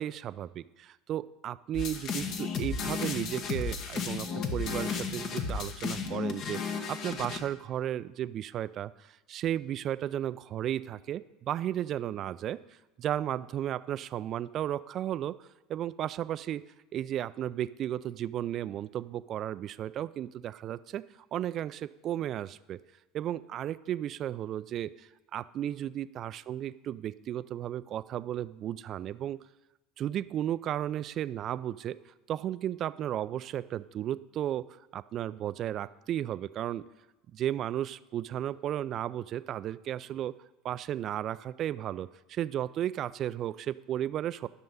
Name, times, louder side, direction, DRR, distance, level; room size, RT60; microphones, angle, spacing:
voice 1, 0.0-12.6 13.0-16.6 16.9-21.0 21.3-22.8 23.1-29.4 30.0-34.7 34.9-36.9 37.3-40.3 40.6-44.5, right 11 dB, 45° right, 17 dB, 0.4 m, -34 dB
sound 1, 1.7-7.4, left 5 dB, 50° left, 1.3 m, -34 dB
11.0 x 6.3 x 5.6 m, 1.0 s
hypercardioid pair, 75°, 0 cm